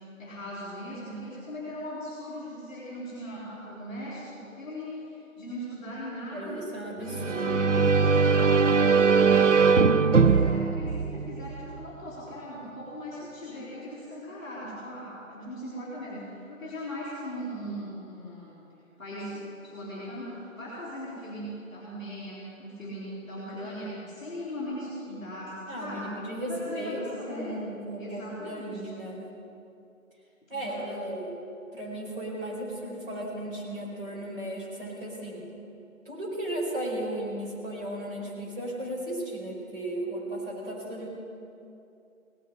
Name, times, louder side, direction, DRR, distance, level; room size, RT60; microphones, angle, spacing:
voice 1, 0.2-6.7 7.0-18.6 19.0-26.2 26.5-27.6 28.0-28.8 30.4-31.1, equal, 5° left, -16 dB, 2.6 m, -39 dB
voice 2, 6.3-7.7 25.7-29.3 30.5-31.4 31.7-35.5 36.0-41.1, right 1 dB, 40° right, -4 dB, 4.6 m, -35 dB
sound 1, 7.1-11.8, right 5 dB, 60° right, 0.6 m, -21 dB
17.5 x 7.9 x 10.0 m, 2.7 s
figure-of-eight pair, 170°, 42 cm